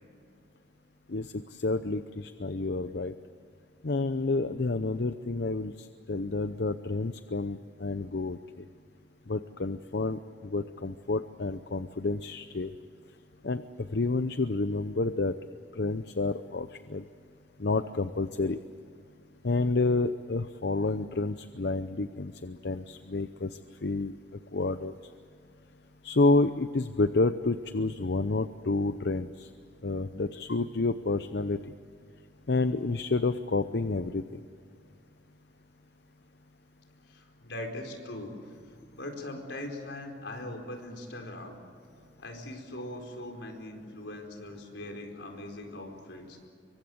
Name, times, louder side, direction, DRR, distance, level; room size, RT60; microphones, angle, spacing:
voice 1, 1.1-3.1 3.8-8.6 9.3-12.7 13.4-15.3 15.8-17.0 17.6-18.6 19.4-24.1 24.5-24.9 26.0-29.5 29.8-31.7 32.5-34.4, left 3 dB, 60° left, 12 dB, 0.7 m, -29 dB
voice 2, 37.0-38.5 38.9-41.5 42.2-46.4, left 1 dB, 80° left, 3 dB, 4.5 m, -41 dB
25.5 x 24.0 x 7.9 m, 2.3 s
head